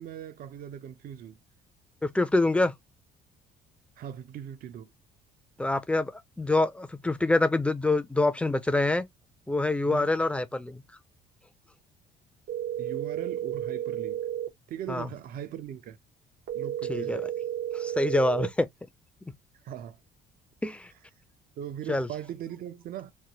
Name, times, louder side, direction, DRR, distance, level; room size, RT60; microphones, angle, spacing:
voice 1, 0.0-1.4 4.0-4.9 9.9-10.1 12.8-14.2 14.7-16.0 16.5-17.3 19.6-20.0 21.6-23.1, right 10 dB, 60° right, 0.6 m, -39 dB
voice 2, 2.0-2.7 5.6-6.1 6.4-9.0 9.5-10.8 14.9-15.1 16.9-17.2 17.7-18.7 20.6-20.9 21.9-22.1, left 2 dB, 5° left, 0.5 m, -25 dB
sound 1, 12.5-14.5 16.5-18.5, right 11 dB, 80° right, 0.9 m, -32 dB
3.2 x 2.2 x 2.8 m
cardioid pair, 110°, 17 cm